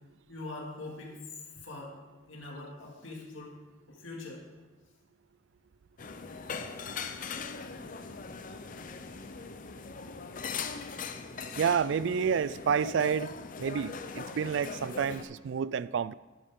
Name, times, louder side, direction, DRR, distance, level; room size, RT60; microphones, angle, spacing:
voice 1, 0.3-1.2 1.6-2.0 2.3-3.5 3.9-4.5 15.1-15.2, left 2 dB, 75° left, 2.2 m, -43 dB
sound 1, 6.0-15.2, left 5 dB, 40° left, 0.6 m, -40 dB
voice 2, 11.6-13.3 13.6-16.1, right 7 dB, 60° right, 0.3 m, -29 dB
11.5 x 11.0 x 3.7 m
head